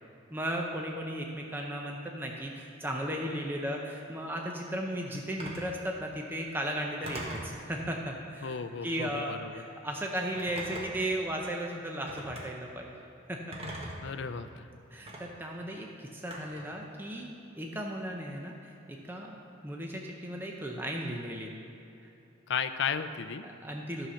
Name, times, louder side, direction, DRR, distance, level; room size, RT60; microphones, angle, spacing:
voice 1, 0.3-13.0 13.3-13.9 14.9-19.4 19.6-21.5 23.4-24.1, right 1 dB, 10° right, 0 dB, 0.6 m, -36 dB
Telephone, 5.4-5.7 7.0-7.5 8.8-9.2 10.3-11.1 12.1-12.4 13.5-14.1 15.1-15.2 16.3-16.7, right 1 dB, 30° right, 1.3 m, -41 dB
voice 2, 8.4-9.5 14.0-14.7 22.5-23.4, left 6 dB, 55° left, 10 dB, 0.4 m, -34 dB
11.0 x 5.7 x 6.4 m, 2.8 s
head